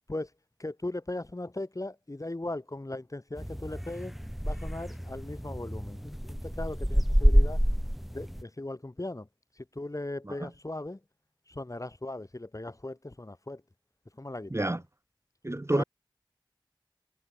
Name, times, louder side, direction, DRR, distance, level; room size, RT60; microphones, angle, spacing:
voice 1, 0.6-4.1 4.4-7.6 8.1-9.3 9.6-11.0 11.5-13.6 14.1-14.7 15.7-15.8, left 2 dB, 40° left, 2.0 m, -38 dB
sound 1, 3.4-8.4, equal, ahead, 1.0 m, -27 dB
voice 2, 15.4-15.8, right 1 dB, 35° right, 1.8 m, -27 dB
wide cardioid pair, 40°, 8 cm